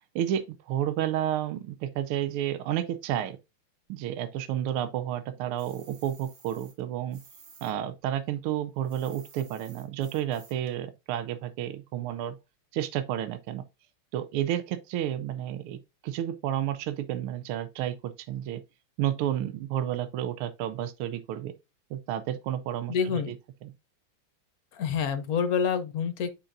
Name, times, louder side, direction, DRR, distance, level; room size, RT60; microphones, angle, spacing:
voice 1, 0.1-3.4 3.9-7.2 7.6-12.4 12.7-13.6 14.1-15.8 16.0-18.6 19.0-21.5 21.9-23.3 23.6-23.7, right 11 dB, 85° right, 1.5 m, -31 dB
sound 1, 5.6-7.7 8.0-10.7, right 5 dB, 45° right, 1.6 m, -54 dB
voice 2, 22.9-23.3 24.7-26.3, left 6 dB, 60° left, 1.0 m, -27 dB
8.6 x 5.3 x 2.5 m
omnidirectional pair, 2.4 m